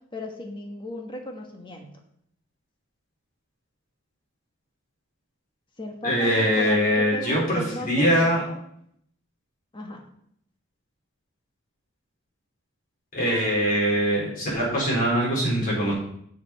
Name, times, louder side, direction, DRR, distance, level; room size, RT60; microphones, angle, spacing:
voice 1, 0.1-1.9 5.8-8.6 9.7-10.0, left 1 dB, 25° left, 2 dB, 1.4 m, -36 dB
voice 2, 6.0-8.4 13.1-15.9, equal, 45° left, -5 dB, 4.2 m, -22 dB
6.7 x 6.6 x 5.7 m, 0.70 s
head